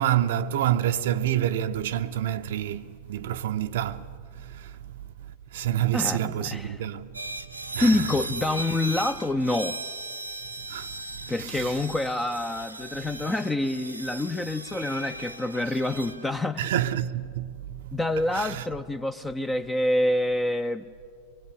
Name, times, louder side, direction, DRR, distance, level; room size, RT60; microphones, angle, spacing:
voice 1, 0.0-4.7 5.5-7.3 7.7-8.0 10.7-11.8 16.6-18.0 18.3-18.6, right 11 dB, 55° right, 0.6 m, -28 dB
voice 2, 5.9-6.8 7.8-9.8 11.3-16.7 17.9-20.8, left 1 dB, 10° left, 0.6 m, -27 dB
sound 1, 7.1-16.4, right 2 dB, 85° right, 1.1 m, -38 dB
23.5 x 22.0 x 8.5 m
figure-of-eight pair, 90°, 0 cm